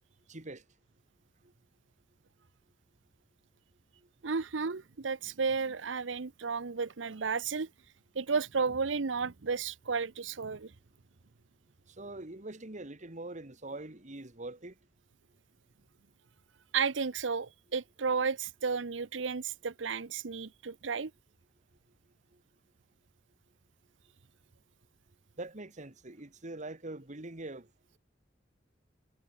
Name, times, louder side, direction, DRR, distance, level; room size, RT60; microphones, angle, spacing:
voice 1, 0.3-0.6 12.0-14.7 25.4-27.7, right 2 dB, 40° right, 2.0 m, -43 dB
voice 2, 4.2-7.7 8.1-10.7 16.7-21.1, right 5 dB, 85° right, 0.8 m, -33 dB
head